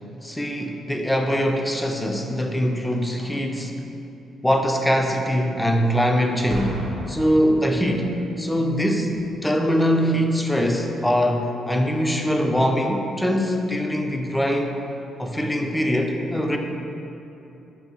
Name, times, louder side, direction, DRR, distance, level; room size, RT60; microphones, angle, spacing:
voice 1, 0.2-3.8 4.4-6.8 7.1-14.8 15.2-16.6, equal, 10° left, 3 dB, 0.3 m, -22 dB
Boom, 6.5-8.2 9.1-9.4, right 1 dB, 85° right, 0.6 m, -34 dB
4.4 x 2.6 x 2.8 m, 2.9 s
cardioid pair, 90°, 0 cm